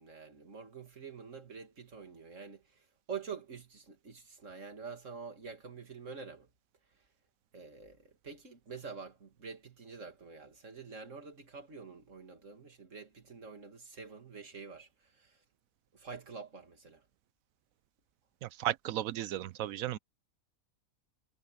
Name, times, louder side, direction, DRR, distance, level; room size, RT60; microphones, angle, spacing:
voice 1, 0.0-6.5 7.5-15.4 15.9-17.0, right 5 dB, 60° right, 2.9 m, -47 dB
voice 2, 18.4-20.0, right 12 dB, 80° right, 1.0 m, -35 dB
omnidirectional pair, 1.5 m